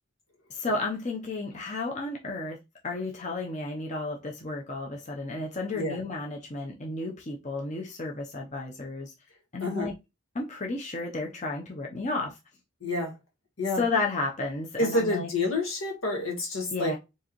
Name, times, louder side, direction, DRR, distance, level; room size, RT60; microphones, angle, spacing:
voice 1, 0.5-2.6 2.8-9.1 9.5-9.9 10.3-12.4 13.8-15.3 16.7-17.0, left 3 dB, 35° left, 0.7 m, -32 dB
voice 2, 9.6-9.9 12.8-13.1 13.6-13.8 14.8-17.0, left 2 dB, 80° left, 1.9 m, -28 dB
4.6 x 2.8 x 3.0 m
head